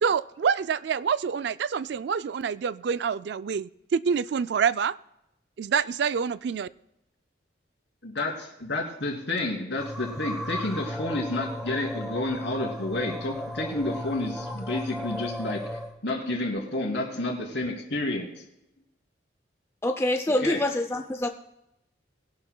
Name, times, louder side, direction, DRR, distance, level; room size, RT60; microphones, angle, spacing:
voice 1, 0.0-5.0 5.6-6.7, right 6 dB, 60° right, 16 dB, 0.3 m, -26 dB
voice 2, 8.0-15.6 16.0-18.3 20.4-20.6, left 2 dB, 70° left, 0 dB, 3.0 m, -30 dB
sound 1, 9.8-15.9, left 1 dB, 5° right, 1.0 m, -35 dB
voice 3, 19.8-21.3, left 1 dB, 15° left, 6 dB, 0.5 m, -25 dB
20.5 x 11.5 x 2.3 m, 0.86 s
head